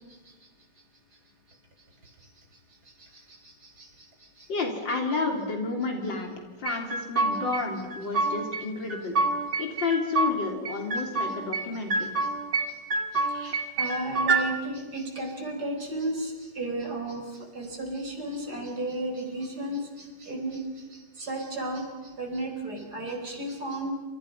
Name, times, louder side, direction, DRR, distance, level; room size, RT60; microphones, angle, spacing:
voice 1, 3.0-4.5 8.2-8.3 12.0-12.3 12.7-12.8 13.1-23.9, right 1 dB, 60° right, 3 dB, 5.5 m, -34 dB
voice 2, 4.5-6.3 6.6-9.1 9.6-12.1, left 4 dB, 85° left, 2 dB, 3.9 m, -30 dB
sound 1, 6.7-7.6 7.9-8.6 8.9-10.4 10.7-11.6 11.9-12.7 12.9-14.4, right 3 dB, 35° right, 2.7 m, -27 dB
29.0 x 28.5 x 5.6 m, 1.3 s
omnidirectional pair, 2.0 m